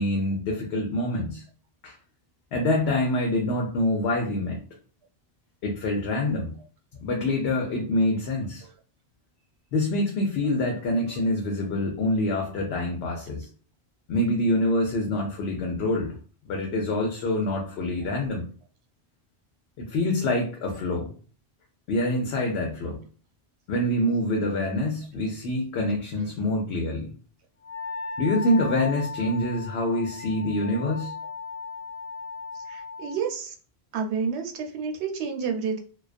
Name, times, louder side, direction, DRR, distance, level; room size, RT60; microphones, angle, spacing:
voice 1, 0.0-1.4 1.8-2.0 2.5-4.6 5.6-6.5 7.0-8.6 9.7-13.5 14.1-16.1 16.5-18.4 19.8-21.1 21.9-23.0 23.7-27.1 28.2-31.1, left 1 dB, 75° left, 1 dB, 0.8 m, -26 dB
Wind instrument woodwind instrument, 27.6-33.2, left 4 dB, 40° left, 0.6 m, -37 dB
voice 2, 32.7-33.5 33.9-35.8, right 6 dB, 85° right, 4 dB, 0.8 m, -30 dB
2.3 x 2.2 x 2.4 m, 0.40 s
omnidirectional pair, 1.1 m